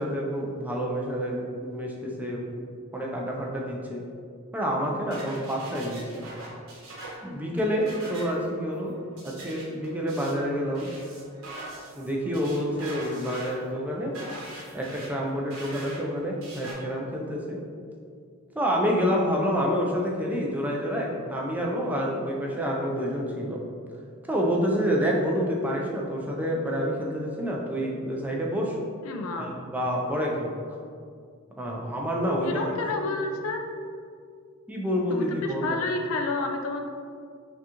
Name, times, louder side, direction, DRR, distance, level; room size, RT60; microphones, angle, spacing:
voice 1, 0.0-2.6 2.9-4.0 4.5-6.3 7.2-8.9 9.2-10.9 12.0-14.1 14.7-17.6 18.5-23.6 24.3-28.8 29.4-30.5 31.6-32.6 32.9-33.2 34.7-35.8, equal, 5° right, -2 dB, 0.5 m, -28 dB
sound 1, 5.1-16.7, right 2 dB, 80° right, 1.3 m, -43 dB
voice 2, 29.0-29.5 32.4-33.6 35.1-36.8, left 3 dB, 75° left, 3 dB, 0.4 m, -30 dB
5.9 x 2.4 x 2.9 m, 2.2 s
head